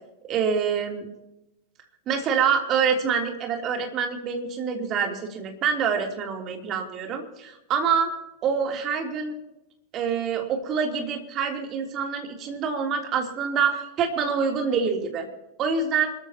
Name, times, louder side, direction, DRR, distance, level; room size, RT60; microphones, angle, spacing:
voice 1, 0.3-1.0 2.1-8.1 8.4-9.4 9.9-15.3 15.6-16.1, right 6 dB, 35° right, 2 dB, 3.3 m, -26 dB
27.0 x 14.0 x 3.0 m, 0.91 s
figure-of-eight pair, 90°, 0 cm